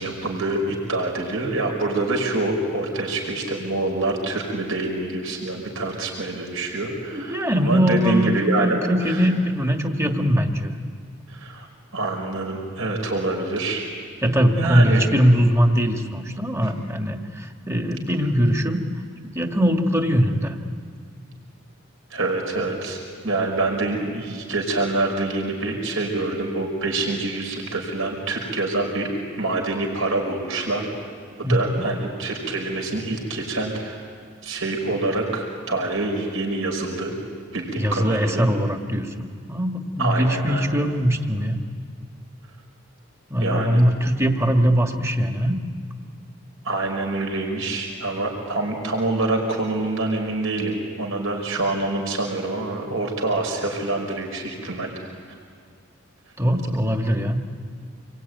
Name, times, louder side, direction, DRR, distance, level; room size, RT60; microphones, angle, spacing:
voice 1, 0.0-8.8 9.0-9.3 11.3-11.7 11.9-13.9 14.2-15.0 16.6-16.7 22.1-29.1 29.4-31.1 31.4-34.0 34.4-37.1 37.5-38.4 40.0-40.7 43.4-43.8 46.6-54.9, right 2 dB, 75° right, 1 dB, 5.3 m, -26 dB
voice 2, 7.1-8.3 8.6-10.7 14.2-18.8 19.2-20.6 31.4-31.8 37.8-39.1 39.5-41.6 43.3-45.6 56.4-57.4, equal, 15° right, 4 dB, 1.7 m, -21 dB
27.5 x 22.5 x 9.4 m, 2.1 s
head